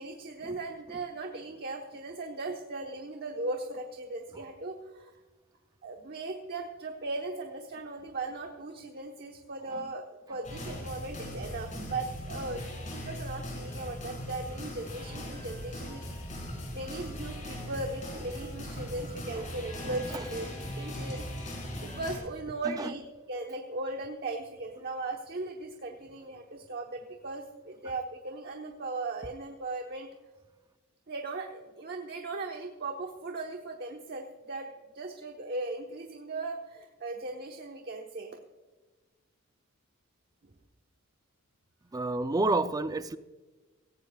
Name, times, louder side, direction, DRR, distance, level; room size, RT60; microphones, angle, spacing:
voice 1, 0.0-5.2 5.8-12.6 12.9-16.0 16.7-20.5 20.8-23.0 23.3-30.1 31.1-38.4, right 2 dB, 50° right, 1.1 m, -38 dB
sound 1, 10.4-22.2, equal, 35° left, 4.4 m, -39 dB
sound 2, 13.7-22.4, left 1 dB, 20° left, 4.1 m, -58 dB
voice 2, 41.9-43.2, right 2 dB, 20° right, 0.5 m, -29 dB
17.5 x 16.0 x 2.4 m
head